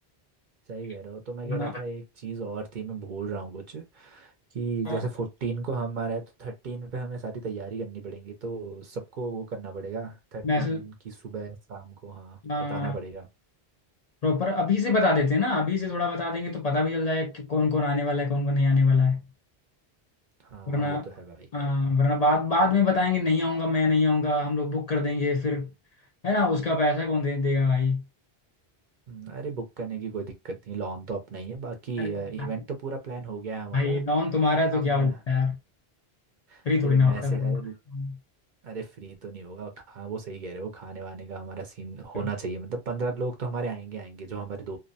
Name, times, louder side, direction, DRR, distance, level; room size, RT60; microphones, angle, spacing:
voice 1, 0.7-12.4 12.7-13.3 20.4-21.5 29.1-34.0 34.7-35.2 36.5-37.7 38.6-44.8, right 4 dB, 55° right, 0.6 m, -35 dB
voice 2, 1.4-1.8 4.9-5.0 10.4-10.8 12.4-12.9 14.2-19.2 20.7-21.1 21.5-25.7 26.2-28.0 32.0-32.1 32.4-32.5 33.7-35.5 36.6-37.6 37.9-38.1 42.1-42.2, left 3 dB, 50° left, 0.5 m, -24 dB
2.5 x 2.1 x 2.6 m
omnidirectional pair, 1.1 m